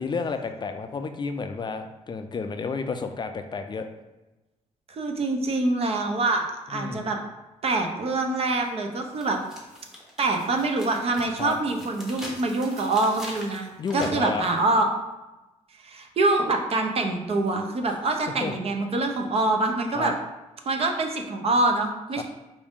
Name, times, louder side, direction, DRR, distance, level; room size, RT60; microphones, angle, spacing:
voice 1, 0.0-3.9 6.7-7.1 11.4-11.5 13.8-14.5 18.4-18.5 19.9-20.1 22.2-22.3, left 4 dB, 35° left, 7 dB, 0.4 m, -31 dB
voice 2, 4.9-7.2 7.6-9.4 10.2-13.7 13.9-14.9 15.8-20.1 20.6-22.2, right 2 dB, 50° right, 4 dB, 0.6 m, -25 dB
sound 1, 8.6-8.7 9.2-14.6, left 1 dB, 5° right, 0.9 m, -42 dB
4.7 x 2.6 x 3.6 m, 1.0 s
cardioid pair, 100°, 13 cm